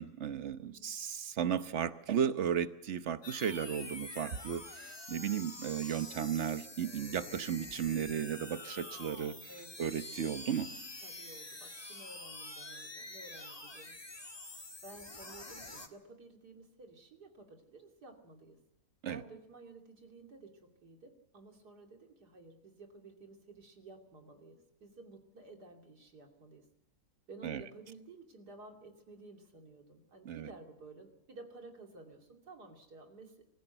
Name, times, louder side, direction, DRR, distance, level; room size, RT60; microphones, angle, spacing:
voice 1, 0.0-9.3 9.8-10.7 19.0-19.2 27.4-27.6 30.2-30.5, right 8 dB, 50° right, 11 dB, 1.1 m, -35 dB
voice 2, 0.6-0.9 9.5-9.9 11.0-14.0 14.8-18.6 19.1-26.6 27.3-33.4, right 3 dB, 85° right, 3 dB, 3.3 m, -53 dB
sound 1, 3.2-15.9, left 2 dB, 15° left, 1.4 m, -47 dB
23.5 x 15.5 x 8.0 m, 0.86 s
omnidirectional pair, 1.7 m